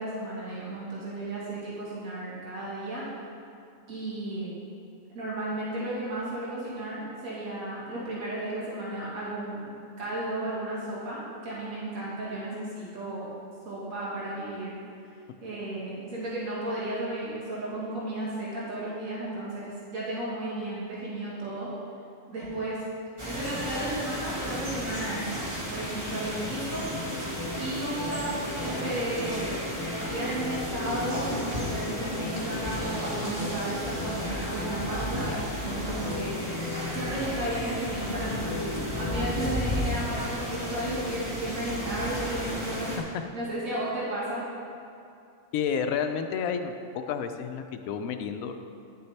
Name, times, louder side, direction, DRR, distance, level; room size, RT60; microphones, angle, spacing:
voice 1, 0.0-3.1 3.9-4.5 5.1-13.3 13.6-14.8 15.4-21.7 22.3-22.8 23.2-25.3 25.7-26.8 27.6-29.6 30.0-36.4 36.9-38.5 38.9-42.9 43.3-44.5, right 1 dB, 80° right, -7 dB, 1.9 m, -34 dB
sound 1, 23.2-43.0, equal, 25° right, 1.3 m, -34 dB
sound 2, 26.9-40.4, left 3 dB, 35° left, 0.4 m, -38 dB
voice 2, 45.5-48.5, left 7 dB, 85° left, 7 dB, 1.0 m, -30 dB
10.0 x 6.9 x 3.3 m, 2.5 s
omnidirectional pair, 1.4 m